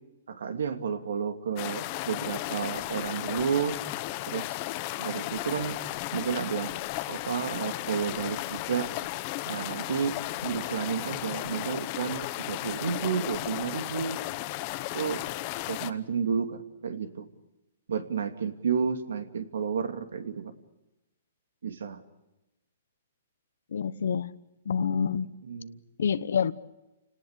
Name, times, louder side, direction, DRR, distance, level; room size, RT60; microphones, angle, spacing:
voice 1, 0.3-3.8 4.3-4.6 5.0-5.8 6.1-6.7 7.1-8.9 9.4-14.2 14.9-15.2 15.7-17.3 17.9-20.5 21.6-22.0 25.4-25.8, right 6 dB, 85° right, 9 dB, 2.5 m, -31 dB
sound 1, 1.6-15.9, left 18 dB, 30° left, 0.8 m, -35 dB
voice 2, 23.7-24.3 24.6-25.3 26.0-26.5, left 7 dB, 75° left, 13 dB, 1.0 m, -27 dB
29.5 x 18.5 x 8.3 m, 0.99 s
hypercardioid pair, 165°, 0 cm